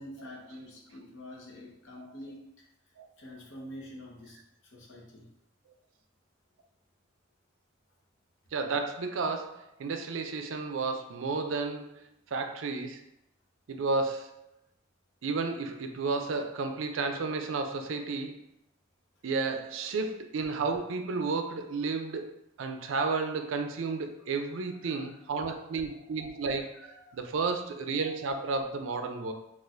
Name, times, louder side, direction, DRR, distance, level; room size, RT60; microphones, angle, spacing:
voice 1, 0.0-2.7 3.2-4.4 4.7-5.3 24.8-25.2 26.7-27.2, left 1 dB, 70° left, -2 dB, 0.8 m, -47 dB
voice 2, 8.5-13.0 13.7-14.4 15.2-18.4 19.2-29.3, right 4 dB, 70° right, 6 dB, 0.4 m, -32 dB
4.0 x 2.4 x 2.5 m, 0.81 s
head